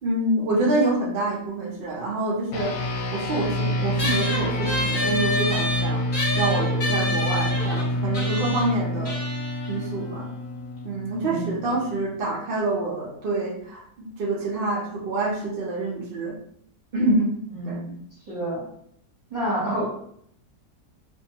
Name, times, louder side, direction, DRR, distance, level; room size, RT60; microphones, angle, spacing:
voice 1, 0.0-6.1 6.3-9.2 9.7-10.3 10.8-16.3 16.9-17.3 17.6-17.8, right 2 dB, 85° right, -2 dB, 0.5 m, -26 dB
sound 1, 2.5-12.2, left 1 dB, 70° left, 1.0 m, -28 dB
sound 2, 4.0-10.8, left 1 dB, 40° left, 0.7 m, -29 dB
voice 2, 11.2-11.7 17.5-18.0 18.3-18.6 19.3-19.9, right 1 dB, 40° right, -7 dB, 0.7 m, -29 dB
2.6 x 2.2 x 2.7 m, 0.68 s
omnidirectional pair, 1.8 m